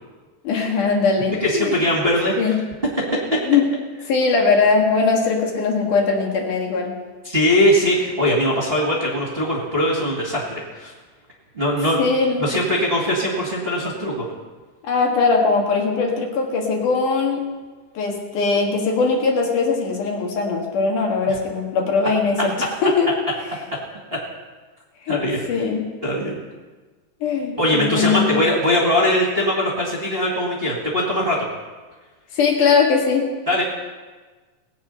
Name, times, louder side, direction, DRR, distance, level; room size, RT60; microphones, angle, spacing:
voice 1, 0.4-1.7 2.4-2.5 3.4-3.7 4.1-6.9 12.0-12.5 14.8-17.5 17.9-23.1 25.0-25.2 25.5-25.9 27.2-28.4 32.3-33.3, left 4 dB, 70° left, 0 dB, 3.2 m, -20 dB
voice 2, 1.4-2.5 3.0-3.4 7.2-10.9 11.5-12.0 12.4-14.3 21.3-21.4 25.1-25.4 26.0-26.4 27.6-31.4 33.5-33.6, left 1 dB, 20° right, -5 dB, 2.1 m, -21 dB
20.0 x 8.5 x 5.7 m, 1.3 s
omnidirectional pair, 3.8 m